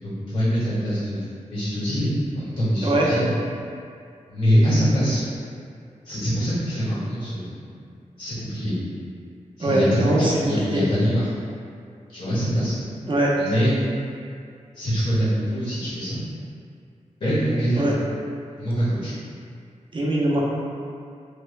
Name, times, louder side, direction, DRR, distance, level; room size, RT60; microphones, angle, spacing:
voice 1, 0.0-2.1 2.3-3.3 4.3-5.2 6.0-7.6 8.2-8.7 9.6-11.3 12.1-12.8 13.4-13.8 14.7-16.2 17.2-17.8 18.6-19.1, equal, 60° left, -13 dB, 1.2 m, -23 dB
voice 2, 9.6-10.2 10.7-10.8 13.1-13.3 17.8-17.9 19.9-20.4, right 1 dB, 40° right, -5 dB, 0.6 m, -21 dB
3.3 x 2.1 x 3.2 m, 2.4 s
wide cardioid pair, 85°, 13 cm